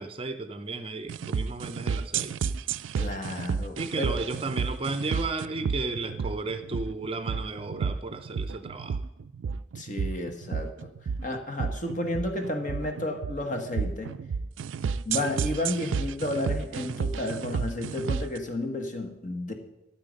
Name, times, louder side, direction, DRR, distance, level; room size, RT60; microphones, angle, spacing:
voice 1, 0.0-2.3 3.8-9.0, right 3 dB, 30° right, 10 dB, 0.6 m, -34 dB
sound 1, 1.1-18.4, right 6 dB, 90° right, 0.4 m, -31 dB
voice 2, 3.0-4.1 9.7-10.9 11.2-14.2 15.0-19.5, left 1 dB, 40° left, 4 dB, 1.4 m, -32 dB
12.5 x 9.2 x 5.3 m, 0.94 s
head